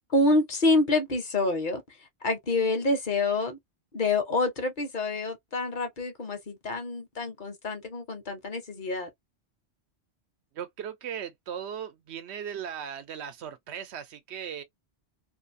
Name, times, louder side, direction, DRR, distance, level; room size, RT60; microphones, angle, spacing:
voice 1, 0.1-3.6 3.9-9.1, left 2 dB, 50° left, 0.9 m, -27 dB
voice 2, 10.5-14.6, right 8 dB, 85° right, 0.9 m, -37 dB
2.6 x 2.4 x 2.5 m
omnidirectional pair, 1.1 m